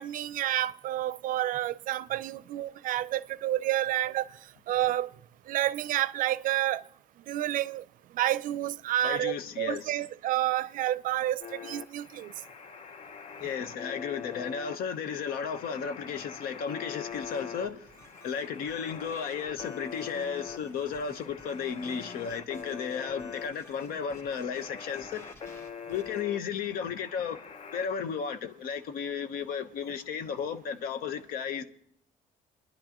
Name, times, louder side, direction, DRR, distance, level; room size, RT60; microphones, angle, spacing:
voice 1, 0.0-4.3 4.7-5.1 5.5-6.8 7.3-7.8 8.1-12.3, right 13 dB, 65° right, 0.5 m, -29 dB
voice 2, 9.0-10.1 13.4-17.9 18.2-25.2 25.9-27.4 27.7-31.6, left 7 dB, 80° left, 1.1 m, -34 dB
sound 1, 11.4-27.9, left 6 dB, 45° left, 0.8 m, -44 dB
sound 2, 17.1-26.2, left 2 dB, 15° left, 1.4 m, -53 dB
26.0 x 10.5 x 3.0 m
cardioid pair, 110°, 15 cm